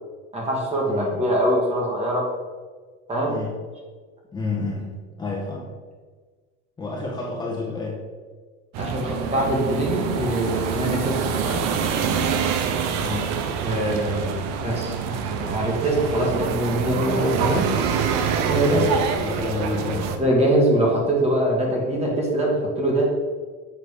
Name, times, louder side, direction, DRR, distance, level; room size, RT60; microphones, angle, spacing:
voice 1, 0.3-2.3 3.1-3.3 8.8-11.6 13.6-17.7 18.4-18.8 20.2-23.1, right 1 dB, 20° right, -2 dB, 1.8 m, -23 dB
voice 2, 0.9-1.3 3.2-3.5 4.3-4.9 5.2-5.7 6.8-8.0 13.0-13.3 18.7-20.2, left 3 dB, 15° left, -5 dB, 1.5 m, -30 dB
sound 1, 8.7-20.2, right 6 dB, 55° right, 0.8 m, -26 dB
7.1 x 4.0 x 4.9 m, 1.4 s
supercardioid pair, 125°, 33 cm